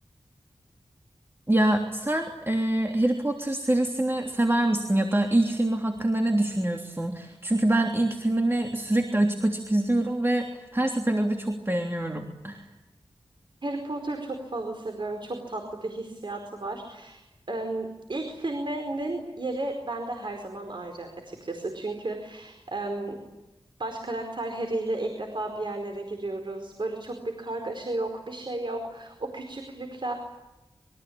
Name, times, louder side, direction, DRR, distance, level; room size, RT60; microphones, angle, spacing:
voice 1, 1.5-12.6, right 1 dB, 25° right, 3 dB, 3.3 m, -25 dB
voice 2, 13.6-17.2 17.5-23.2 23.8-30.1, right 2 dB, 55° right, 4 dB, 4.8 m, -33 dB
27.5 x 24.0 x 8.8 m, 0.98 s
wide cardioid pair, 70°, 10 cm